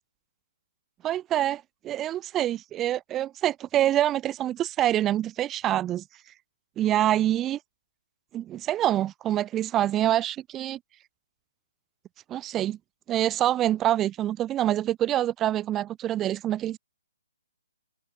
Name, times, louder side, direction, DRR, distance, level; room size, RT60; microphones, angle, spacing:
voice 1, 1.0-6.0 6.8-7.6 8.3-10.8 12.3-12.8 13.1-16.8, right 12 dB, 15° right, 1.6 m, -26 dB
open air
hypercardioid pair, 160°, 0 cm